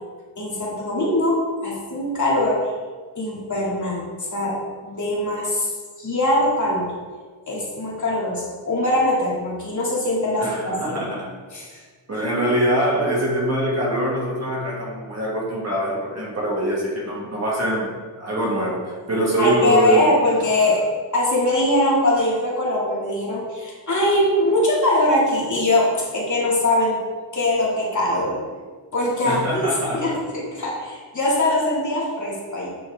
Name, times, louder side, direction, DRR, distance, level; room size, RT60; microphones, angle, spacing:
voice 1, 0.4-2.6 3.1-4.1 4.3-4.6 4.8-5.7 6.0-6.9 7.5-11.1 11.5-11.8 12.3-12.4 19.4-20.9 21.1-27.0 27.3-28.4 28.9-32.7, left 1 dB, 40° left, -5 dB, 2.5 m, -22 dB
voice 2, 10.4-11.3 12.1-20.1 29.2-30.2, right 1 dB, 35° right, -4 dB, 2.1 m, -23 dB
8.8 x 6.3 x 3.6 m, 1.5 s
wide cardioid pair, 110°, 45 cm